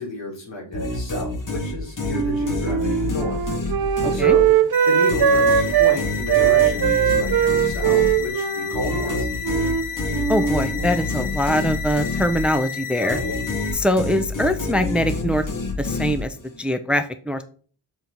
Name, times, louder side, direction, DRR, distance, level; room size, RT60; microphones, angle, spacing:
voice 1, 0.0-3.5 4.1-4.6 4.8-9.3 12.9-13.4, left 2 dB, 80° left, -3 dB, 4.3 m, -31 dB
sound 1, 0.7-4.7 5.1-12.7 13.1-16.6, left 2 dB, 45° left, 2.0 m, -28 dB
Wind instrument woodwind instrument, 2.1-6.0 6.3-9.8 10.1-10.7, right 9 dB, 55° right, 0.6 m, -20 dB
voice 2, 4.0-4.4 10.3-13.2 13.7-15.4 15.8-17.4, equal, 5° right, 10 dB, 0.5 m, -23 dB
sound 2, 4.7-13.7, left 9 dB, 20° left, 4.4 m, -32 dB
7.1 x 6.0 x 3.9 m, 0.42 s
wide cardioid pair, 130°, 44 cm